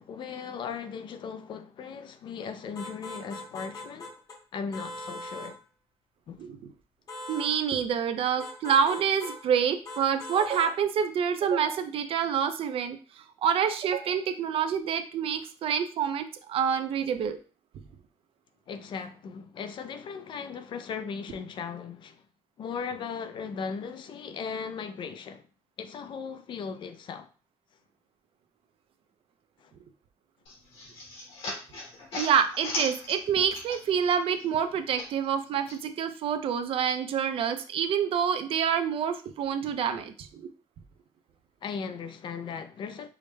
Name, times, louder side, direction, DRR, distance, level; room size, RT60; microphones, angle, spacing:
voice 1, 0.0-4.1 4.5-5.6 6.3-6.4 18.7-22.3 22.6-25.5 25.8-27.3 29.6-29.7 41.6-43.1, left 6 dB, 45° left, 0.4 m, -37 dB
sound 1, 2.7-4.4 4.7-5.5 7.1-7.5 8.4-9.4 9.8-10.7, left 1 dB, 30° left, 0.8 m, -40 dB
voice 2, 7.3-17.4 32.2-40.5, right 7 dB, 55° right, 0.4 m, -27 dB
sound 2, 30.5-34.1 34.4-35.8, left 2 dB, 65° left, 2.0 m, -38 dB
4.8 x 2.1 x 3.1 m
cardioid pair, 170°, 11 cm